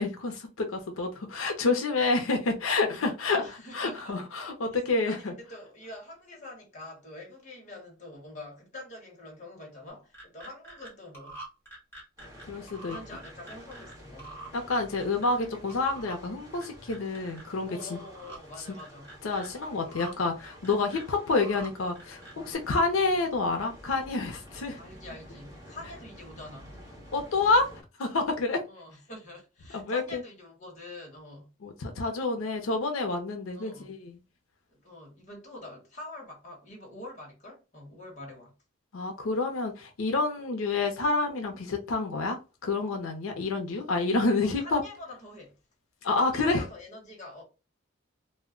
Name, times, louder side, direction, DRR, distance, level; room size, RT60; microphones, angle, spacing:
voice 1, 0.0-5.3 12.5-13.0 14.5-18.0 19.2-24.8 27.1-27.7 28.0-28.6 29.7-30.2 31.6-34.2 38.9-44.8 46.0-46.6, left 3 dB, 90° left, 0.5 m, -28 dB
voice 2, 3.2-4.2 5.0-11.4 12.8-14.4 17.6-19.2 21.4-21.7 24.8-26.8 28.7-31.5 33.5-33.9 34.7-38.5 44.4-45.6 46.2-47.4, left 1 dB, 35° left, 0.9 m, -45 dB
sound 1, 9.9-10.9 11.1-13.9 14.2-15.4 15.7-16.2 16.5-17.4 17.8-18.4 18.8-19.5 19.9-20.1 20.4-21.7 22.0-22.6, right 2 dB, 10° left, 1.0 m, -45 dB
sound 2, 12.2-27.8, equal, 15° right, 0.9 m, -50 dB
2.1 x 2.1 x 3.6 m
head